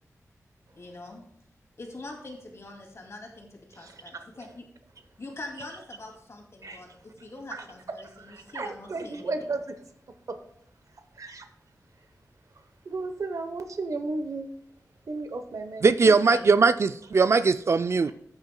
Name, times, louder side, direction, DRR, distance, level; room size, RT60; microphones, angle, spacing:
voice 1, 0.7-1.3 1.8-4.7 5.2-9.3 16.0-16.4, left 2 dB, 55° left, 1 dB, 2.5 m, -43 dB
voice 2, 8.0-9.8 10.3-10.4 11.2-11.5 12.8-14.5 15.1-15.9, right 3 dB, 70° right, 8 dB, 0.9 m, -34 dB
voice 3, 15.8-18.1, right 4 dB, 55° right, 13 dB, 0.3 m, -20 dB
14.0 x 8.7 x 2.2 m, 0.71 s
wide cardioid pair, 100°, 6 cm